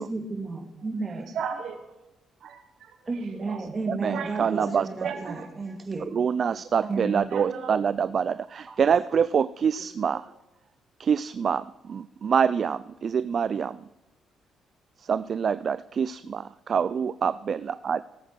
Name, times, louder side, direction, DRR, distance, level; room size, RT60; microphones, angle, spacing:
voice 1, 0.0-1.3 3.1-6.1 6.5-7.2 8.7-8.8, right 3 dB, 30° right, 3 dB, 2.2 m, -33 dB
voice 2, 1.1-1.9 2.4-3.7 4.1-5.5 6.7-7.7, right 7 dB, 70° right, 7 dB, 1.3 m, -36 dB
voice 3, 3.9-4.8 6.1-10.2 11.0-13.8 15.1-18.0, right 7 dB, 50° right, 15 dB, 0.3 m, -26 dB
18.0 x 8.1 x 4.6 m, 1.0 s
cardioid pair, 90°, 0 cm